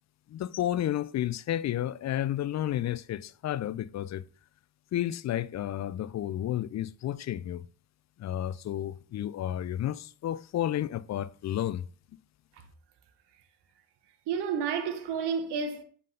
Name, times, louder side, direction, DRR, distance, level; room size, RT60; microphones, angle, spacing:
voice 1, 0.3-4.2 4.9-7.6 8.2-11.9, left 12 dB, 40° left, 0.4 m, -31 dB
voice 2, 14.3-15.8, right 6 dB, 70° right, 1.1 m, -30 dB
7.4 x 3.7 x 3.8 m
hypercardioid pair, 55°, 43 cm